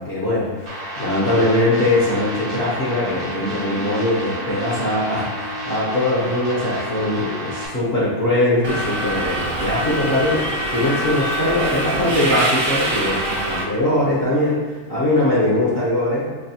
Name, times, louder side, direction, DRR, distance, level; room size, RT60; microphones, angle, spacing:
voice 1, 0.0-16.3, left 1 dB, 45° left, -8 dB, 0.9 m, -21 dB
sound 1, 0.7-7.7, right 1 dB, 35° right, 0.7 m, -31 dB
Wind instrument woodwind instrument, 2.6-11.3, left 1 dB, 80° left, 1.9 m, -38 dB
Subway metro underground, 8.6-13.6, right 1 dB, 70° right, 1.1 m, -24 dB
5.3 x 2.2 x 2.7 m, 1.4 s
omnidirectional pair, 1.6 m